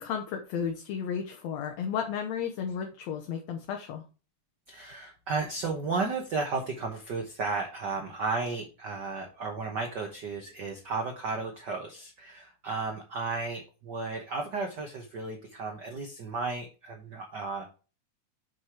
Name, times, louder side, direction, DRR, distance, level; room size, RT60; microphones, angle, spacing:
voice 1, 0.0-4.0, left 7 dB, 70° left, 3 dB, 2.0 m, -33 dB
voice 2, 4.7-17.6, right 4 dB, 65° right, 3 dB, 1.1 m, -34 dB
7.4 x 4.8 x 4.7 m, 0.34 s
omnidirectional pair, 3.6 m